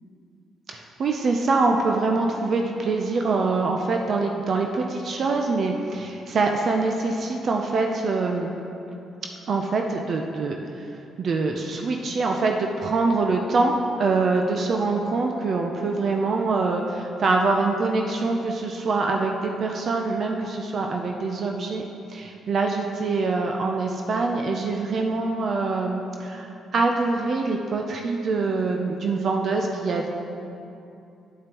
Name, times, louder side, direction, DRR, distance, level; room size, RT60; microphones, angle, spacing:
voice 1, 0.7-8.5 9.5-10.9 11.2-21.8 22.1-30.1, right 3 dB, 55° right, 2 dB, 0.5 m, -24 dB
8.6 x 8.5 x 3.0 m, 2.7 s
cardioid pair, 90°, 0 cm